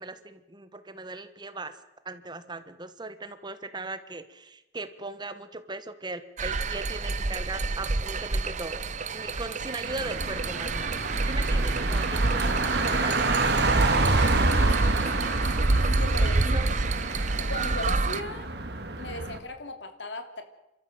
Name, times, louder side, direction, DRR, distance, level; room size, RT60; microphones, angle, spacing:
voice 1, 0.0-1.8 2.0-8.8 9.1-10.9 11.2-13.3 16.4-17.3, right 2 dB, 25° right, 11 dB, 1.3 m, -39 dB
sound 1, 6.4-18.2, right 2 dB, 40° right, 0.8 m, -27 dB
Car, 9.8-19.4, right 3 dB, 60° right, 2.2 m, -29 dB
voice 2, 12.3-12.9 13.2-16.6 17.4-18.5 19.0-20.4, left 2 dB, 75° left, 7 dB, 2.8 m, -39 dB
29.5 x 13.5 x 7.8 m, 0.97 s
head